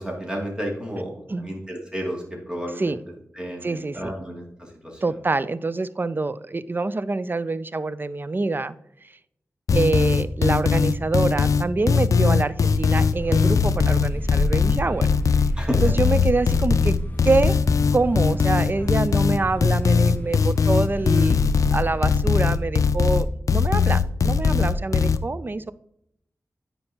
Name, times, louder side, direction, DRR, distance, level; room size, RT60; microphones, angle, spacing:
voice 1, 0.0-3.0 3.3-5.2 15.6-15.9, equal, 15° right, -1 dB, 2.5 m, -31 dB
voice 2, 3.6-4.1 5.0-8.8 9.7-15.1 15.8-17.0 17.2-17.6 17.9-25.7, right 3 dB, 40° right, 15 dB, 0.4 m, -25 dB
sound 1, 9.7-25.2, left 5 dB, 85° left, 0.4 m, -20 dB
sound 2, 12.7-22.0, left 1 dB, 30° left, 1.0 m, -33 dB
9.6 x 5.5 x 2.9 m, 0.77 s
cardioid pair, 50°, 5 cm